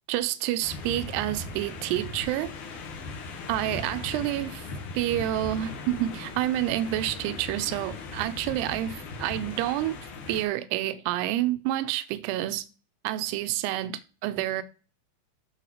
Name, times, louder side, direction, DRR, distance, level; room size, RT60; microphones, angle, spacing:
voice 1, 0.1-2.5 3.5-4.7 4.9-10.0 10.3-12.7 13.0-14.6, right 14 dB, 85° right, 2.7 m, -28 dB
sound 1, 0.6-10.4, left 3 dB, 65° left, 2.2 m, -39 dB
14.0 x 4.8 x 3.0 m
omnidirectional pair, 4.7 m